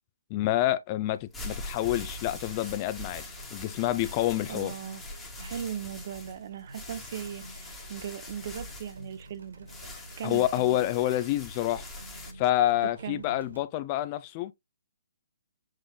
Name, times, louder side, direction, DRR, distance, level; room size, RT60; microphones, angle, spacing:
voice 1, 0.3-3.2 3.5-4.7 10.2-11.9 12.4-14.5, left 14 dB, 30° left, 0.4 m, -28 dB
sound 1, 1.1-12.3, left 1 dB, 10° left, 1.4 m, -43 dB
sound 2, 3.2-13.6, right 2 dB, 80° right, 1.9 m, -49 dB
voice 2, 4.5-5.0 5.4-9.7 10.2-10.8 13.0-13.2, right 9 dB, 50° right, 0.8 m, -38 dB
7.4 x 3.2 x 2.2 m
hypercardioid pair, 145°, 0 cm